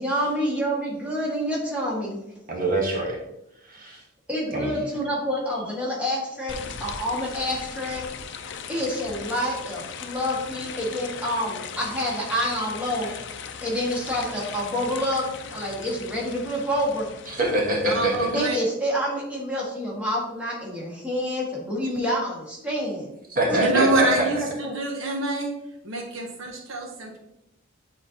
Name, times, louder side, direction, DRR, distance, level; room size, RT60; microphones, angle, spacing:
voice 1, 0.0-2.2 4.3-8.0 8.7-13.1 13.6-17.1 18.3-23.1 23.5-23.8 24.6-24.7, equal, 5° right, -5 dB, 1.8 m, -28 dB
voice 2, 2.5-3.2 3.7-4.0 4.5-4.7 17.3-18.4 23.3-24.2, right 1 dB, 45° right, 0 dB, 1.2 m, -24 dB
sound 1, 6.5-18.3, left 6 dB, 60° left, 0.5 m, -38 dB
voice 3, 17.9-18.6 23.5-25.5 25.8-27.2, right 2 dB, 75° right, 2 dB, 1.0 m, -26 dB
8.6 x 4.3 x 2.8 m, 0.85 s
head